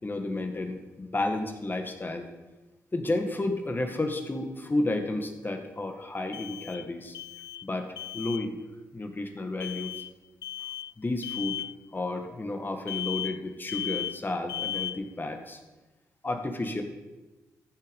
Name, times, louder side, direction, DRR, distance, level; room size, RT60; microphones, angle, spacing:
voice 1, 0.0-2.3 2.9-7.1 7.6-8.6 8.9-10.0 11.0-11.6 11.9-15.6 16.2-16.8, left 2 dB, 30° left, 6 dB, 1.8 m, -32 dB
sound 1, 3.1-3.2 6.3-6.9 7.1-7.7 8.0-8.5 9.6-10.1 10.4-10.9 11.2-11.7 12.9-13.4 13.7-14.2 14.5-15.1, left 11 dB, 85° left, 0.4 m, -35 dB
14.5 x 6.8 x 5.4 m, 1.1 s
cardioid pair, 60°, 7 cm